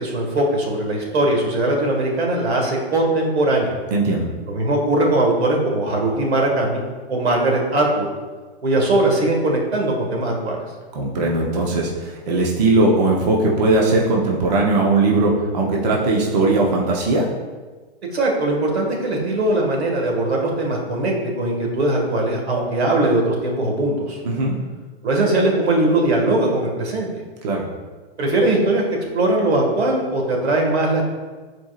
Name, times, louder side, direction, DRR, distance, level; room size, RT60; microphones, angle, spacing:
voice 1, 0.0-3.7 4.5-6.8 7.1-8.1 8.6-10.6 18.1-24.2 25.0-27.1 28.2-28.8 29.1-31.0, right 2 dB, 90° right, 0 dB, 1.9 m, -20 dB
voice 2, 3.9-4.2 10.9-17.2 24.2-24.6 27.4-27.6, right 2 dB, 40° right, -2 dB, 0.9 m, -19 dB
10.5 x 4.5 x 2.5 m, 1.4 s
hypercardioid pair, 170°, 31 cm